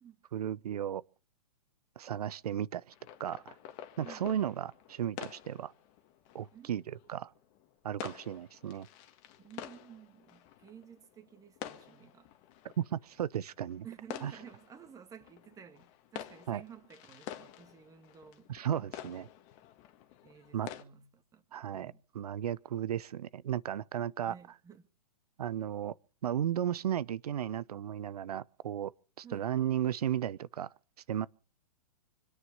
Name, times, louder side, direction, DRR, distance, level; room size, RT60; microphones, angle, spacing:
voice 1, 0.3-1.0 2.0-2.9 3.2-3.5 4.0-5.7 6.3-7.3 7.8-8.9 12.8-13.9 14.2-14.3 16.5-16.6 18.5-19.3 20.5-20.7 21.5-24.3 25.4-25.9 26.2-28.9 29.2-30.7 31.1-31.3, right 10 dB, 65° right, 0.8 m, -34 dB
sound 1, 2.9-20.8, left 11 dB, 35° left, 1.7 m, -49 dB
voice 2, 4.0-4.6 6.5-6.9 9.4-12.3 13.8-18.5 18.9-19.4 20.2-21.4 21.7-22.0 24.3-24.9 29.2-29.5, right 8 dB, 15° right, 1.9 m, -53 dB
25.5 x 9.8 x 5.4 m
hypercardioid pair, 130°, 21 cm